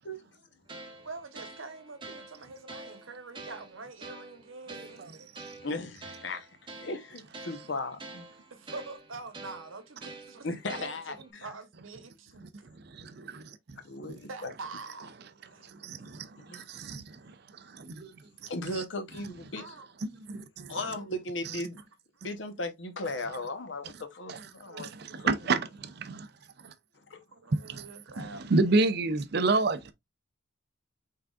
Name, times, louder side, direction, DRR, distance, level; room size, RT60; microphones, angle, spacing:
sound 1, 0.7-11.3, right 2 dB, 25° right, 0.8 m, -47 dB
voice 1, 1.0-5.3 8.5-10.5 10.8-10.9 11.2-12.4 14.3-15.2 15.5-15.7 17.3-17.4 19.6-19.9 20.7-21.2 24.6-25.5 27.3-28.8, right 3 dB, 85° right, 1.0 m, -45 dB
voice 2, 5.6-6.5 6.8-8.3 10.4-11.5 13.8-14.5 16.4-16.6 18.5-19.7 20.7-21.8 22.2-24.9 25.2-25.3 27.1-27.2 29.5-29.6, left 2 dB, 65° left, 1.0 m, -37 dB
voice 3, 12.9-13.4 15.7-16.3 16.5-17.2 17.7-18.1 20.0-20.7 24.3-24.4 24.8-24.9 25.2-26.3 26.6-26.7 27.6-27.8 28.5-29.9, right 3 dB, 55° right, 0.5 m, -29 dB
5.7 x 3.7 x 2.4 m
head